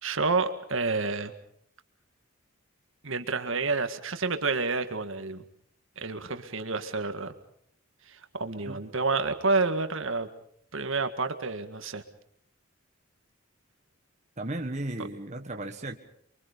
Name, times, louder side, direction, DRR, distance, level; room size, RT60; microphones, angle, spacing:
voice 1, 0.0-1.3 3.0-5.4 6.0-7.3 8.1-10.3 10.7-12.0, right 3 dB, 65° right, 8 dB, 1.8 m, -29 dB
voice 2, 14.4-16.0, right 1 dB, 30° right, 3 dB, 1.5 m, -35 dB
29.0 x 23.5 x 5.3 m, 0.65 s
head